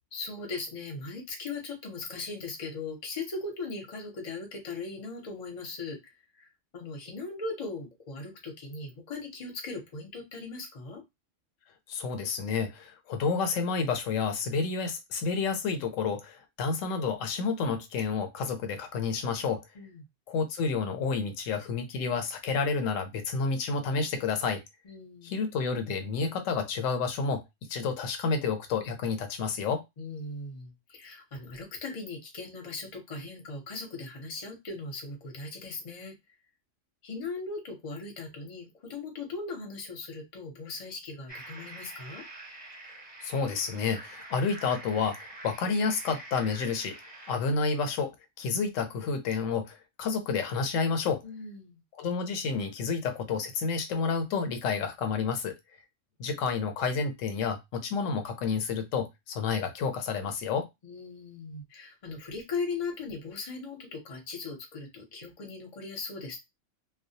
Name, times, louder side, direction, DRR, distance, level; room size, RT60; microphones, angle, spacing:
voice 1, 0.1-6.1 6.4-11.0 19.7-20.0 24.8-25.4 30.0-36.2 37.0-42.2 51.2-51.8 60.8-66.4, left 3 dB, 40° left, 2 dB, 0.6 m, -39 dB
voice 2, 11.9-19.6 20.3-24.6 25.2-27.4 27.7-29.8 43.2-47.0 47.3-51.2 52.0-55.5 56.2-60.7, left 5 dB, 85° left, 7 dB, 1.0 m, -30 dB
sound 1, 41.3-47.4, right 2 dB, 10° right, 0.8 m, -46 dB
2.2 x 2.1 x 2.7 m, 0.20 s
omnidirectional pair, 1.3 m